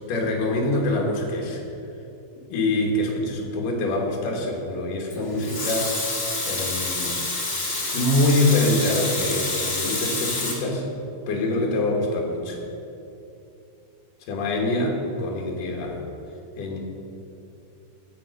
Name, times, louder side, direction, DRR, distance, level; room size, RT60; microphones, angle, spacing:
voice 1, 0.1-1.6 2.5-6.0 6.4-7.2 7.9-10.9 11.3-12.6 14.2-16.0 16.6-16.8, left 1 dB, 75° left, 1 dB, 2.9 m, -25 dB
Water tap faucet / Sink (filling or washing) / Liquid, 5.1-10.5, left 2 dB, 45° left, 0.9 m, -28 dB
14.5 x 4.9 x 6.4 m, 2.8 s
omnidirectional pair, 3.9 m